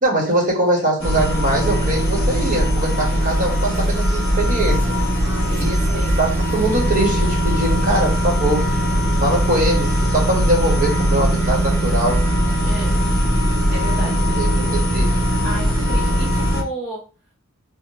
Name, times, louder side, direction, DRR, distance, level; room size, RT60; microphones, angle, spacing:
voice 1, 0.0-5.0 5.6-5.7 6.2-8.6 9.2-12.2 14.4-15.2, right 1 dB, 40° right, -3 dB, 1.0 m, -22 dB
sound 1, 1.0-16.6, equal, 25° left, 1.3 m, -19 dB
voice 2, 5.2-6.2 12.7-12.9 13.7-14.2 15.4-17.0, right 1 dB, 5° right, -7 dB, 0.5 m, -32 dB
2.7 x 2.0 x 3.1 m, 0.34 s
head